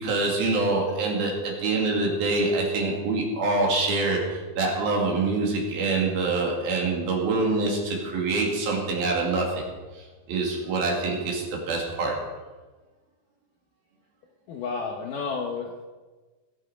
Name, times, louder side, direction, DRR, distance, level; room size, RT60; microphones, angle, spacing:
voice 1, 0.0-9.7 10.0-12.2, right 3 dB, 65° right, -1 dB, 4.2 m, -25 dB
voice 2, 14.5-15.8, left 4 dB, 70° left, 2 dB, 2.1 m, -31 dB
21.0 x 8.3 x 5.1 m, 1.3 s
omnidirectional pair, 4.8 m